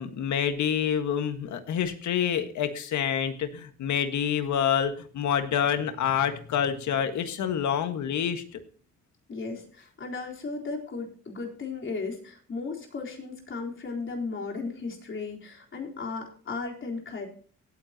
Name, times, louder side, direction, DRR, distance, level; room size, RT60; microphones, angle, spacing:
voice 1, 0.0-8.6, left 8 dB, 70° left, 8 dB, 1.7 m, -27 dB
voice 2, 9.3-17.3, left 4 dB, 40° left, 0 dB, 4.0 m, -35 dB
17.5 x 9.6 x 2.9 m, 0.41 s
cardioid pair, 90°, 30 cm